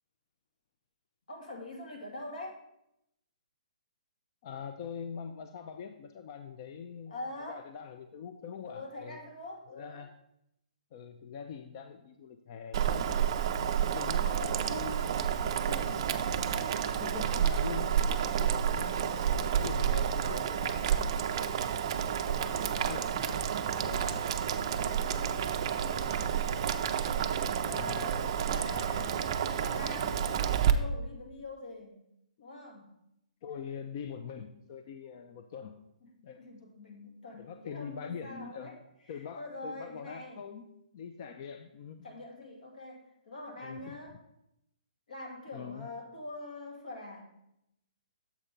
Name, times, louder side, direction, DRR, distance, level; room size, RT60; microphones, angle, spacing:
voice 1, 1.3-2.6 7.1-7.7 8.6-10.0 22.0-23.3 23.8-26.5 27.1-32.0 32.4-32.9 36.0-36.1 36.4-38.8 39.1-40.4 42.0-44.2 45.1-47.3, left 2 dB, 80° left, 0 dB, 2.3 m, -45 dB
voice 2, 4.4-9.2 9.7-10.1 10.9-12.9 13.7-15.3 15.7-20.8 22.7-23.4 27.7-28.0 33.4-35.7 36.2-36.4 37.4-38.8 39.1-40.6 40.9-42.1 43.6-43.9 45.5-45.9, left 7 dB, 30° left, 7 dB, 0.4 m, -43 dB
Boiling, 12.7-30.7, right 8 dB, 35° right, 0.4 m, -30 dB
7.2 x 4.3 x 5.1 m, 0.80 s
hypercardioid pair, 165°, 4 cm